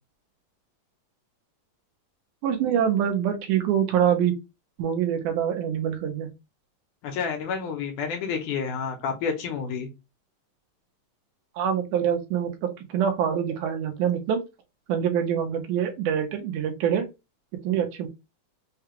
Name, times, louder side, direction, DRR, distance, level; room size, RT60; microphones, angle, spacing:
voice 1, 2.4-4.4 4.8-6.3 11.6-14.4 14.9-17.1 17.6-18.1, right 8 dB, 80° right, 4 dB, 2.2 m, -25 dB
voice 2, 7.0-9.9, left 6 dB, 75° left, 3 dB, 2.4 m, -29 dB
5.7 x 2.4 x 2.9 m, 0.24 s
omnidirectional pair, 3.7 m